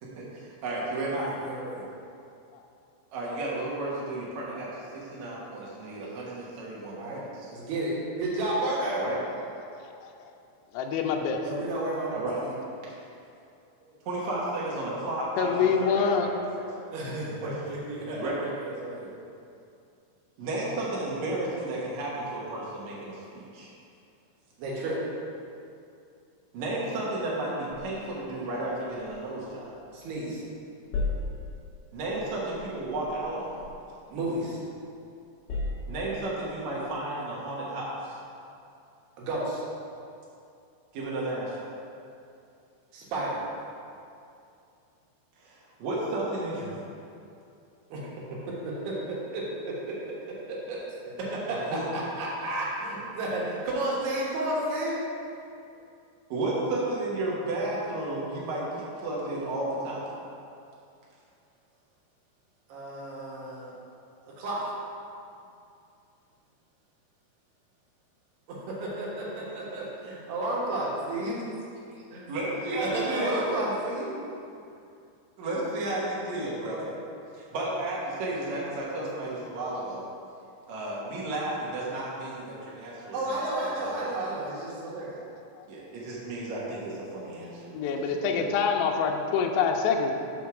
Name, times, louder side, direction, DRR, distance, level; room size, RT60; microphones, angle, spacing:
voice 1, 0.0-1.2 3.1-7.5 8.9-9.2 11.1-11.2 12.1-12.4 12.8-12.9 14.0-16.7 17.4-17.5 18.1-18.4 20.4-23.7 26.5-29.8 31.9-33.6 35.9-38.2 40.9-41.6 45.4-46.8 51.7-51.8 56.3-60.1 72.3-73.5 75.4-76.8 77.4-80.0 80.7-84.3 85.7-87.9 88.3-88.5, right 2 dB, 90° right, -5 dB, 1.6 m, -33 dB
voice 2, 1.1-1.8 6.9-7.2 7.5-7.9 8.2-9.1 11.4-12.5 16.9-19.1 24.6-25.0 29.9-30.4 34.1-34.6 39.2-39.6 42.9-43.4 47.9-48.1 48.5-49.9 50.5-50.8 51.0-55.0 62.7-63.7 64.2-64.7 68.5-71.4 72.1-72.3 72.8-74.1 76.7-76.9 83.1-85.2, right 1 dB, 70° right, -5 dB, 3.2 m, -32 dB
voice 3, 10.7-11.4 15.4-16.4 87.7-90.1, left 6 dB, 80° left, 2 dB, 2.6 m, -25 dB
sound 1, 28.0-30.3 30.5-34.8 35.2-36.5, left 3 dB, 65° left, 2.3 m, -38 dB
6.2 x 5.1 x 5.8 m, 2.6 s
omnidirectional pair, 5.1 m